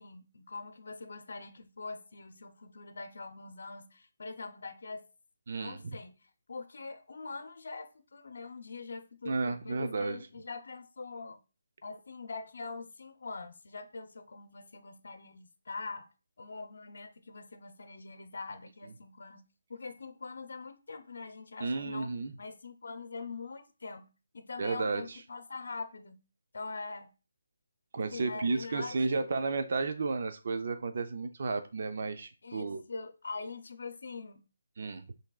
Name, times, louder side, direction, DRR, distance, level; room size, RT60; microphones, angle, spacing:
voice 1, 0.0-5.1 5.6-11.4 11.8-16.1 16.4-19.4 19.7-22.1 22.4-24.1 24.3-26.2 26.5-27.1 28.1-29.5 32.4-34.4, left 4 dB, 65° left, 0.7 m, -43 dB
voice 2, 5.5-5.8 9.2-10.3 21.6-22.3 24.6-25.0 27.9-32.8 34.8-35.0, right 3 dB, 50° right, 0.6 m, -32 dB
5.9 x 3.4 x 2.4 m
hypercardioid pair, 170°, 0 cm